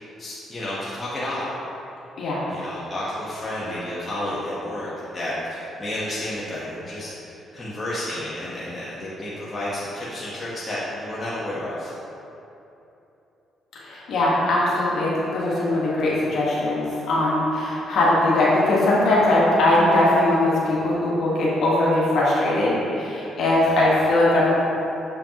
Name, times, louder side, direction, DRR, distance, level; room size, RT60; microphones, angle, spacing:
voice 1, 0.0-1.5 2.5-11.9 23.6-23.8, left 1 dB, 25° left, -9 dB, 1.2 m, -31 dB
voice 2, 13.7-24.5, left 1 dB, 70° left, -7 dB, 1.4 m, -20 dB
7.1 x 5.1 x 2.9 m, 2.9 s
cardioid pair, 90°, 0 cm